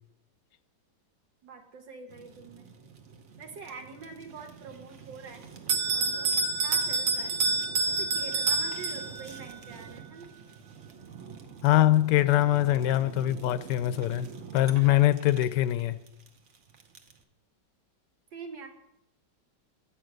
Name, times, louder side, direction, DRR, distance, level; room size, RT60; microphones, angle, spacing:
voice 1, 1.4-2.7 3.4-5.4 5.9-7.3 7.9-10.3 18.3-18.7, right 4 dB, 85° right, 1.9 m, -45 dB
Fire, 2.1-17.2, right 6 dB, 50° right, 1.0 m, -47 dB
Bell, 5.7-9.4, right 4 dB, 70° right, 1.3 m, -27 dB
voice 2, 11.6-14.3 14.5-16.0, left 14 dB, 80° left, 1.2 m, -23 dB
10.5 x 5.7 x 7.9 m
omnidirectional pair, 1.9 m